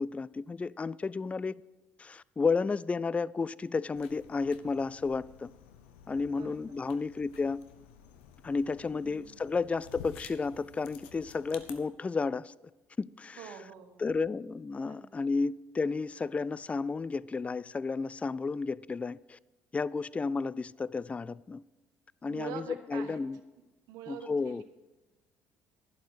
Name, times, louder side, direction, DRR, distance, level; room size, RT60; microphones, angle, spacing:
voice 1, 0.0-1.5 2.0-5.5 6.1-7.6 8.4-12.5 13.0-13.5 14.0-19.4 19.7-21.6 22.2-23.4 24.1-24.6, left 4 dB, 20° left, 0.3 m, -32 dB
sound 1, 4.0-11.7, left 8 dB, 85° left, 0.9 m, -52 dB
voice 2, 6.2-6.6 8.9-9.4 13.4-14.0 14.9-15.3 22.3-23.2 23.9-24.6, right 9 dB, 70° right, 1.4 m, -45 dB
11.5 x 10.5 x 4.9 m
hypercardioid pair, 60°, 6 cm